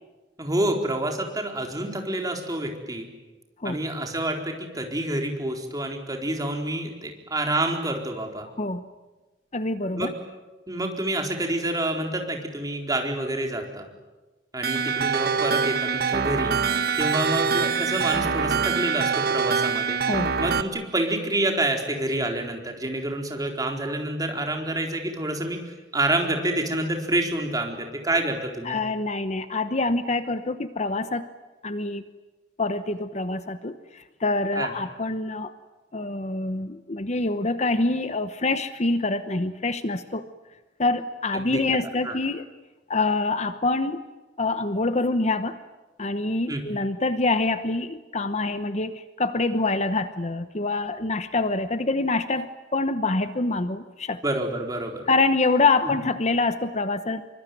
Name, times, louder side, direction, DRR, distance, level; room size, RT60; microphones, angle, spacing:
voice 1, 0.4-3.1 3.6-8.5 10.0-10.1 10.7-13.9 14.5-16.5 17.0-20.0 20.4-25.6 25.9-28.8 34.5-34.7 41.3-41.6 42.0-42.1 46.5-46.7 54.2-55.0 55.8-55.9, right 1 dB, 20° right, 2 dB, 4.3 m, -28 dB
voice 2, 9.5-10.1 20.1-20.3 28.7-31.2 31.6-32.0 32.6-35.5 35.9-40.2 40.8-42.4 42.9-44.0 44.4-45.6 46.0-54.2 55.1-57.2, left 3 dB, 40° left, 11 dB, 1.0 m, -25 dB
sound 1, 14.6-20.6, right 5 dB, 60° right, 1.4 m, -24 dB
26.5 x 24.0 x 9.4 m, 1.2 s
head